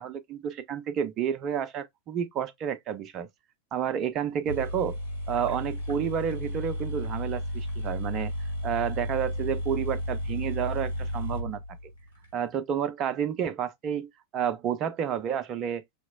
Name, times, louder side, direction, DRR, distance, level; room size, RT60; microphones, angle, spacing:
voice 1, 0.0-3.3 3.7-5.0 5.3-8.3 8.6-11.6 12.3-15.8, right 8 dB, 35° right, 0.5 m, -30 dB
sound 1, 4.2-4.3 4.5-12.3, equal, 85° left, 3.1 m, -33 dB
5.8 x 3.0 x 2.2 m
figure-of-eight pair, 90°, 0 cm